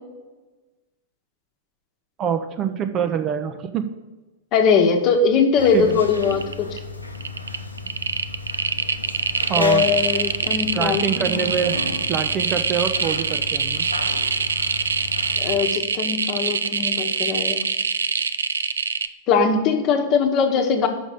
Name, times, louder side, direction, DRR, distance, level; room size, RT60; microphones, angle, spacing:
voice 1, 2.2-3.9 5.7-6.0 9.5-9.9 10.7-11.8 12.1-13.9, right 7 dB, 30° right, 7 dB, 0.6 m, -25 dB
voice 2, 4.5-6.8 9.5-11.3 15.4-17.6 19.3-20.9, left 5 dB, 35° left, 4 dB, 1.1 m, -20 dB
sound 1, 5.6-15.6, left 2 dB, 90° left, 0.8 m, -34 dB
sound 2, 5.6-5.9 6.2-6.8 7.1-19.1, right 5 dB, 70° right, 0.4 m, -24 dB
6.1 x 5.2 x 6.7 m, 1.2 s
figure-of-eight pair, 100°, 0 cm